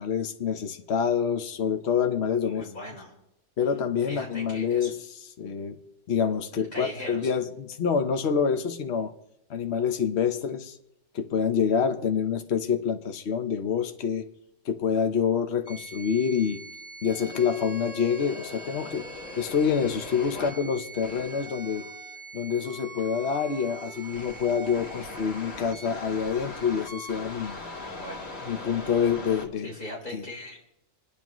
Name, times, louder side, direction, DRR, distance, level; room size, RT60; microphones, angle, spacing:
voice 1, 0.0-2.7 3.6-5.0 5.4-5.8 6.1-9.1 9.5-10.8 11.1-14.3 14.6-16.6 17.0-19.1 19.4-21.9 22.3-27.6 28.5-29.7 30.1-30.2, left 7 dB, 60° left, 6 dB, 1.1 m, -27 dB
voice 2, 2.4-3.1 4.1-4.9 6.5-7.3 20.1-20.6 27.7-28.3 29.6-30.6, left 1 dB, 35° left, -3 dB, 3.8 m, -40 dB
sound 1, 15.7-29.5, left 1 dB, 85° left, 2.0 m, -41 dB
28.5 x 10.5 x 3.1 m, 0.83 s
omnidirectional pair, 1.3 m